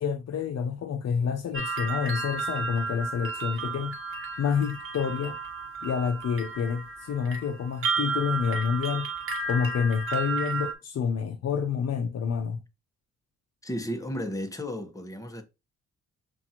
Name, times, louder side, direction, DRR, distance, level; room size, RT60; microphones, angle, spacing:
voice 1, 0.0-4.0 4.4-5.4 5.8-9.1 9.5-12.6, left 6 dB, 60° left, 0.7 m, -28 dB
sound 1, 1.5-10.7, right 4 dB, 45° right, 1.1 m, -33 dB
voice 2, 13.6-15.4, equal, 10° left, 1.1 m, -33 dB
7.0 x 2.6 x 2.9 m
cardioid pair, 75°, 29 cm